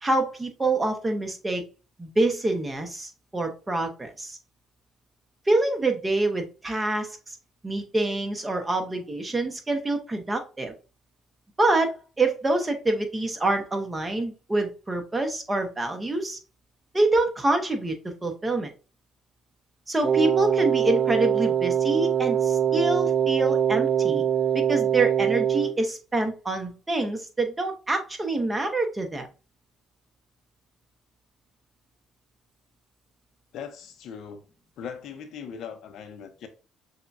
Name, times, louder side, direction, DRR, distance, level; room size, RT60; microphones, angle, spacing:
voice 1, 0.0-1.6 2.0-4.4 5.5-7.4 7.6-10.7 11.6-16.4 16.9-18.7 19.9-24.2 24.5-29.3, right 2 dB, 20° right, 1.0 m, -26 dB
Wind instrument woodwind instrument, 20.0-25.8, right 9 dB, 35° right, 0.4 m, -23 dB
voice 2, 33.5-34.4 34.8-36.5, left 7 dB, 70° left, 0.7 m, -39 dB
6.5 x 2.3 x 2.6 m
supercardioid pair, 80°, 0 cm